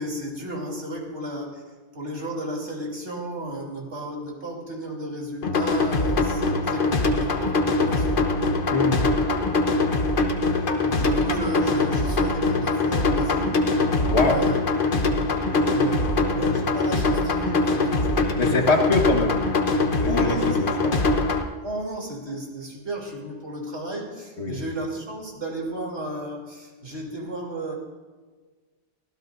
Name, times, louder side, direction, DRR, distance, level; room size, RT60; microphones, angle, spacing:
voice 1, 0.0-1.6 1.9-8.4 10.9-13.5 14.1-14.6 15.5-18.8 20.0-20.8 21.6-27.7, right 1 dB, 80° right, 0 dB, 3.5 m, -33 dB
sound 1, 5.4-21.4, left 2 dB, 50° left, 1.2 m, -22 dB
voice 2, 8.7-9.1 14.1-14.4 18.3-19.5 20.0-21.0 24.4-24.6, left 3 dB, 70° left, 3 dB, 1.8 m, -24 dB
25.0 x 16.0 x 2.6 m, 1.4 s
omnidirectional pair, 1.2 m